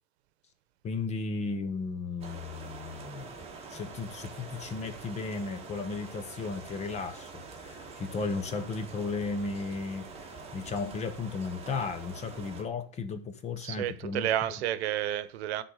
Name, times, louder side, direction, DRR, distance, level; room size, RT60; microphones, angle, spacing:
voice 1, 0.8-3.4 3.7-14.3, left 4 dB, 20° left, 0.9 m, -35 dB
sound 1, 2.2-12.6, right 4 dB, 20° right, 1.8 m, -45 dB
voice 2, 13.6-15.6, right 11 dB, 85° right, 0.9 m, -31 dB
10.5 x 4.0 x 6.3 m
supercardioid pair, 150°, 31 cm